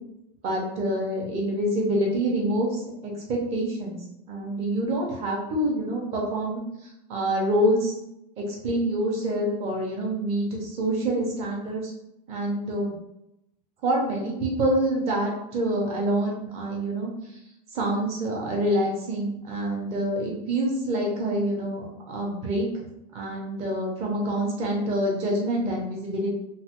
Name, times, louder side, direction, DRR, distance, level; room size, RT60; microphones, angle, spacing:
voice 1, 0.4-4.0 4.3-7.9 8.4-11.9 12.3-12.9 13.8-17.1 17.7-22.8 23.1-26.3, right 1 dB, 30° right, -1 dB, 0.6 m, -26 dB
3.1 x 2.1 x 2.9 m, 0.84 s
supercardioid pair, 180°, 20 cm